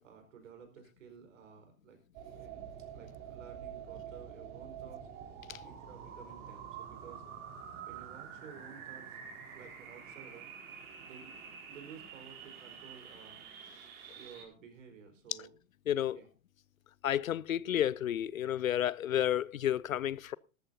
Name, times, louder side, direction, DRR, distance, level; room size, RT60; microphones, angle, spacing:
voice 1, 0.0-2.0 2.3-2.6 2.9-5.1 5.6-7.2 7.8-9.2 9.5-10.5 11.0-11.4 11.6-13.4 14.1-15.6 16.1-16.3, right 7 dB, 65° right, 4.6 m, -53 dB
sound 1, 2.1-14.4, right 8 dB, 45° right, 4.8 m, -47 dB
voice 2, 15.9-16.2 17.0-20.4, left 11 dB, 75° left, 0.6 m, -31 dB
18.5 x 14.0 x 2.8 m
figure-of-eight pair, 90°, 42 cm